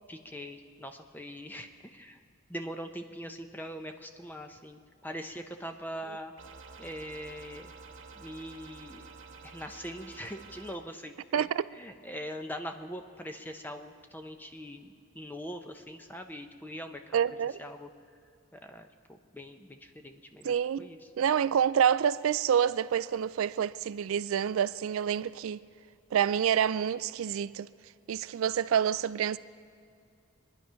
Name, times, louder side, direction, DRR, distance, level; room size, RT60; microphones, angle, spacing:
voice 1, 0.1-2.2 2.5-6.3 6.8-7.7 8.1-9.1 9.4-17.9 18.5-21.1, equal, 10° left, 0.7 m, -42 dB
sound 1, 6.4-10.8, right 4 dB, 60° right, 1.1 m, -49 dB
voice 2, 11.3-11.6 17.1-17.5 20.4-20.8 21.2-25.6 26.1-27.7 28.1-29.4, right 8 dB, 75° right, 0.3 m, -27 dB
23.5 x 10.5 x 5.7 m
head